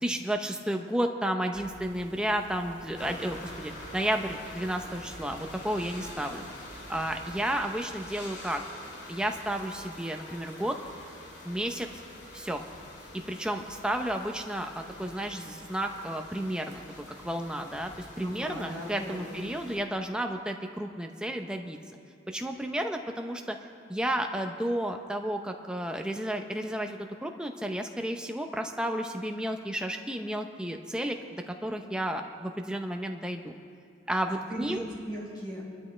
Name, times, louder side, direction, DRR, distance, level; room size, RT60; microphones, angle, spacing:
voice 1, 0.0-6.4 6.9-8.6 9.1-10.8 11.4-11.9 12.3-12.6 13.1-21.8 22.3-23.6 23.9-33.5 34.1-34.9, right 1 dB, 5° right, 4 dB, 0.7 m, -32 dB
sound 1, 1.5-7.6, right 2 dB, 85° right, 0.8 m, -50 dB
sound 2, 2.9-19.8, left 1 dB, 70° left, 2.5 m, -46 dB
voice 2, 18.2-19.4 34.3-35.7, equal, 20° left, -7 dB, 3.9 m, -38 dB
24.0 x 12.0 x 3.3 m, 2.3 s
head